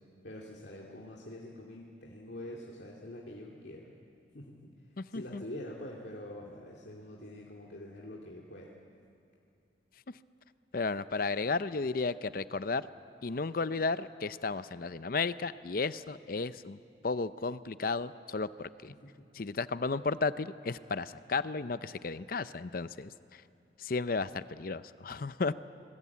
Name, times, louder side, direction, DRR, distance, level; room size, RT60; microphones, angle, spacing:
voice 1, 0.2-3.9 4.3-4.7 5.1-8.7 19.0-19.1, left 1 dB, 70° left, -3 dB, 2.4 m, -45 dB
voice 2, 5.0-5.4 10.7-12.9 13.2-16.8 17.0-18.9 19.3-23.1 23.8-25.5, left 4 dB, 50° left, 14 dB, 0.6 m, -33 dB
26.0 x 21.5 x 8.5 m, 2.6 s
head